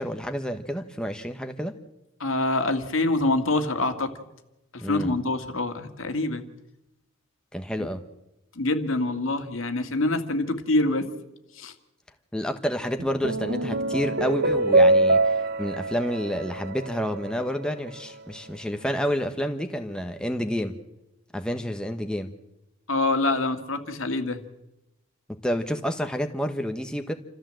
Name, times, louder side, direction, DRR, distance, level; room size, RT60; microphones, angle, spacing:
voice 1, 0.0-1.7 4.8-5.2 7.5-8.0 12.3-20.7 21.3-22.3 25.4-27.1, equal, 5° left, 5 dB, 1.1 m, -29 dB
voice 2, 2.2-4.1 4.7-6.4 7.8-7.9 8.6-11.1 11.6-11.7 22.9-24.4, left 2 dB, 75° left, 7 dB, 1.9 m, -25 dB
sound 1, 13.0-17.6, right 2 dB, 50° right, 1.0 m, -24 dB
27.5 x 14.5 x 7.7 m, 0.95 s
head